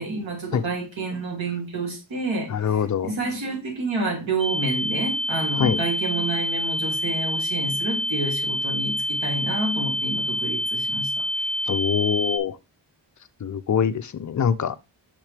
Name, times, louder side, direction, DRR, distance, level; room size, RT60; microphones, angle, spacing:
voice 1, 0.0-11.5, right 2 dB, 75° right, 2.7 m, -29 dB
voice 2, 2.5-3.1 5.6-5.8 11.7-12.6 13.4-14.8, left 7 dB, 40° left, 0.4 m, -24 dB
sound 1, 4.4-12.4, left 1 dB, 15° right, 0.7 m, -27 dB
6.1 x 5.8 x 3.3 m
wide cardioid pair, 160°, 46 cm